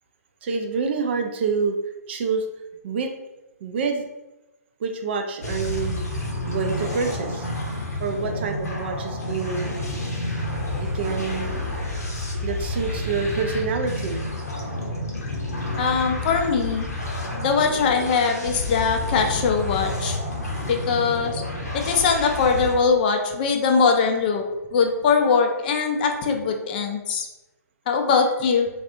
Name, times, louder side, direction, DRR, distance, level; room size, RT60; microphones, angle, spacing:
voice 1, 0.4-1.8 2.1-2.5 2.8-3.1 3.6-4.0 4.8-6.1 6.5-7.5 8.0-9.8 10.8-11.6 12.4-14.2, right 5 dB, 40° right, 4 dB, 0.4 m, -27 dB
sound 1, 5.4-22.8, left 1 dB, 70° left, 0.8 m, -29 dB
voice 2, 15.8-16.9 17.4-20.2 20.7-21.4 21.7-24.4 24.7-27.3 27.9-28.7, left 5 dB, 35° left, 4 dB, 0.4 m, -21 dB
3.3 x 2.3 x 2.6 m, 1.0 s
figure-of-eight pair, 125°, 9 cm